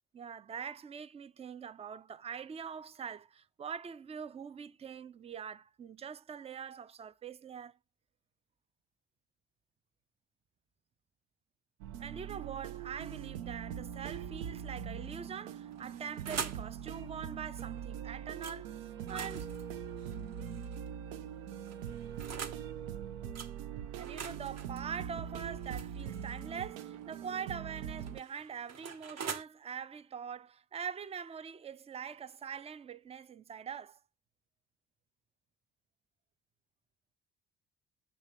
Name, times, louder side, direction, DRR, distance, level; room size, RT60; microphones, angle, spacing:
voice 1, 0.1-7.8 12.0-19.5 23.9-34.0, right 7 dB, 15° right, 0.3 m, -43 dB
sound 1, 11.8-28.2, right 9 dB, 70° right, 0.6 m, -42 dB
sound 2, 15.7-16.7 18.4-18.6 19.0-20.9 21.7-22.6 23.4-23.5 24.0-26.7 27.8-29.4, right 6 dB, 35° right, 0.8 m, -43 dB
7.3 x 3.0 x 5.5 m
figure-of-eight pair, 45°, 45 cm